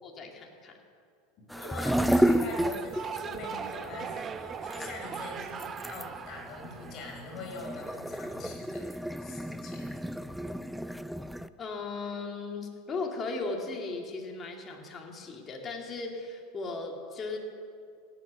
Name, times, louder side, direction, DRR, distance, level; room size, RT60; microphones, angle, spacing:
voice 1, 0.0-0.8 11.6-17.4, left 3 dB, 30° left, 1 dB, 2.3 m, -37 dB
voice 2, 1.5-8.9 9.2-10.1, left 2 dB, 45° left, 0 dB, 4.3 m, -42 dB
sound 1, 1.5-11.5, equal, ahead, 0.4 m, -31 dB
sound 2, 2.4-7.7, right 6 dB, 30° right, 0.7 m, -40 dB
17.0 x 8.3 x 6.4 m, 2.3 s
hypercardioid pair, 100°, 0 cm